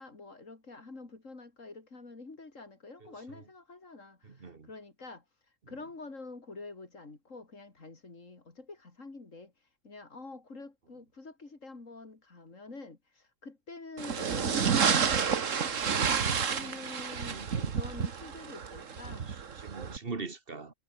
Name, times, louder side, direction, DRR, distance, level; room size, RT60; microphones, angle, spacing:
voice 1, 0.0-5.2 5.7-9.5 9.8-15.8 16.2-19.3, left 3 dB, 85° left, 3.9 m, -47 dB
voice 2, 3.0-3.4 4.2-4.7 5.6-5.8 17.2-17.8 19.1-20.7, right 4 dB, 45° right, 1.8 m, -43 dB
sound 1, 14.0-20.0, right 6 dB, 80° right, 1.8 m, -30 dB
omnidirectional pair, 1.3 m